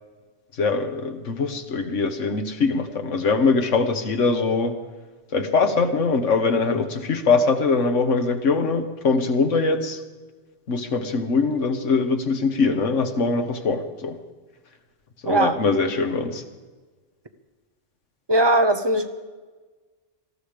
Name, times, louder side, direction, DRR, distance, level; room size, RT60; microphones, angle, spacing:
voice 1, 0.5-4.7 5.3-10.0 10.7-14.2 15.2-16.4, left 4 dB, 90° left, 7 dB, 1.6 m, -22 dB
voice 2, 15.2-15.6 18.3-19.1, right 1 dB, 25° right, 7 dB, 1.0 m, -19 dB
19.0 x 13.5 x 5.1 m, 1.3 s
omnidirectional pair, 1.2 m